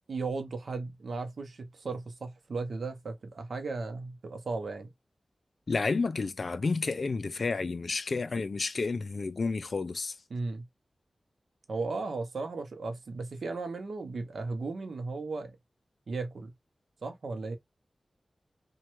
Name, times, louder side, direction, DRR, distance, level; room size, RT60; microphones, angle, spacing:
voice 1, 0.1-4.9 10.3-10.7 11.7-15.6 16.1-16.5 17.0-17.6, right 3 dB, 75° right, 0.7 m, -36 dB
voice 2, 5.7-10.2, left 4 dB, 55° left, 0.3 m, -30 dB
3.1 x 2.2 x 2.9 m
wide cardioid pair, 115°, 0 cm